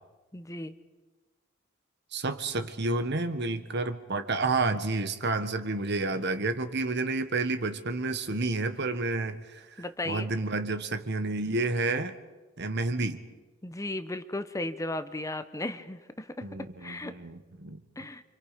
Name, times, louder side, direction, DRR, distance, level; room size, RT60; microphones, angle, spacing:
voice 1, 0.3-0.7 9.8-10.3 13.6-16.5 16.8-17.1 18.0-18.2, left 2 dB, 15° left, 11 dB, 0.9 m, -35 dB
voice 2, 2.1-12.2 12.6-13.2 16.4-17.8, right 3 dB, 60° right, 10 dB, 1.5 m, -30 dB
29.5 x 26.0 x 5.2 m, 1.2 s
head